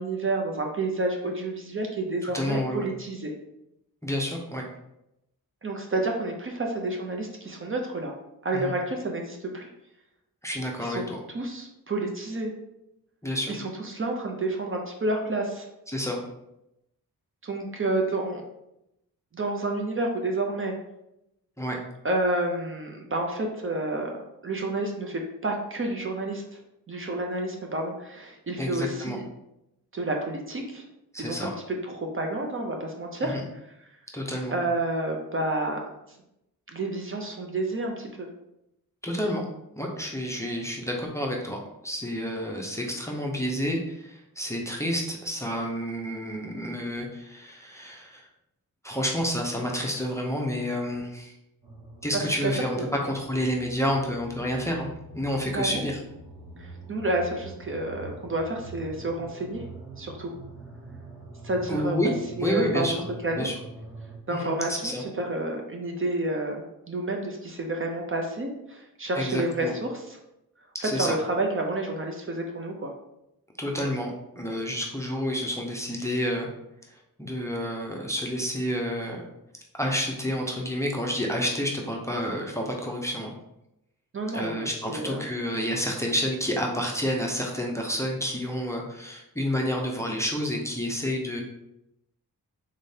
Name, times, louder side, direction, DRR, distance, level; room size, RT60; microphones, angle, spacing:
voice 1, 0.0-3.3 5.6-8.1 8.4-9.7 10.8-11.0 11.3-12.5 13.5-15.7 17.4-18.4 19.3-20.7 22.0-24.1 24.4-26.6 26.9-29.2 29.9-30.8 31.2-31.5 31.8-33.4 34.5-35.8 36.7-38.3 52.1-52.5 52.8-52.9 55.5-55.9 56.6-59.6 60.0-60.3 61.4-62.0 62.4-62.9 63.2-63.5 64.3-70.2 70.8-72.9 84.1-85.2, right 2 dB, 35° right, 2 dB, 0.5 m, -30 dB
voice 2, 2.2-2.8 4.0-4.6 8.5-8.7 10.4-11.2 13.2-13.5 15.9-16.2 21.6-21.8 28.6-29.2 31.1-31.5 33.2-33.4 34.1-34.5 39.0-39.4 39.8-48.2 48.8-51.3 52.0-52.8 53.0-54.9 55.1-56.0 61.7-62.1 62.4-62.9 63.4-63.5 64.3-65.0 69.1-69.7 70.8-71.1 73.6-76.5 77.2-79.2 79.7-83.3 84.3-91.4, equal, 10° left, -1 dB, 0.5 m, -29 dB
sound 1, 51.6-64.2, right 2 dB, 80° right, 1.0 m, -44 dB
3.6 x 3.6 x 2.7 m, 0.85 s
wide cardioid pair, 120°, 35 cm